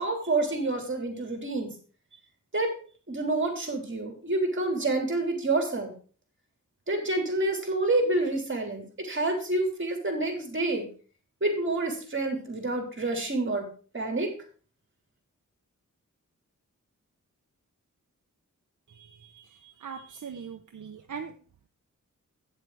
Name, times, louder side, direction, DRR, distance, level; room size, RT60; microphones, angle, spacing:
voice 1, 0.0-1.7 2.5-2.7 3.1-5.9 6.9-10.9 11.4-13.7 13.9-14.3, right 2 dB, 40° right, 3 dB, 3.3 m, -28 dB
voice 2, 18.9-21.3, right 6 dB, 70° right, 6 dB, 0.9 m, -41 dB
9.0 x 7.5 x 4.8 m, 0.40 s
wide cardioid pair, 90°, 32 cm